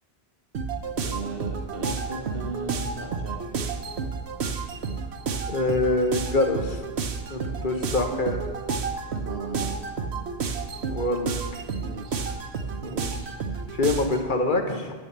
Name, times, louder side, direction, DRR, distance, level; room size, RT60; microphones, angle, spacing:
sound 1, 0.5-14.3, right 5 dB, 80° right, 1.1 m, -31 dB
voice 1, 1.0-3.5 9.2-9.8 11.8-12.4 12.8-13.3, right 3 dB, 60° right, 3 dB, 1.3 m, -37 dB
voice 2, 5.5-6.8 7.3-8.4 10.9-11.6 13.7-14.9, left 2 dB, 50° left, 4 dB, 1.1 m, -25 dB
10.0 x 7.3 x 6.7 m, 1.3 s
omnidirectional pair, 1.1 m